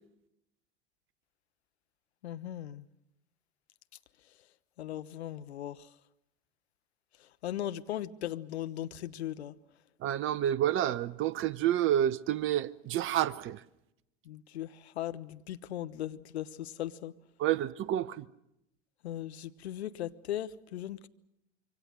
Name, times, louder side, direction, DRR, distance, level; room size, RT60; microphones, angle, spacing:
voice 1, 2.2-2.8 4.8-5.8 7.4-9.5 14.3-17.1 19.0-21.1, left 12 dB, 70° left, 1.1 m, -38 dB
voice 2, 10.0-13.6 17.4-18.2, right 11 dB, 35° right, 1.0 m, -29 dB
26.0 x 24.0 x 6.5 m
figure-of-eight pair, 80°, 34 cm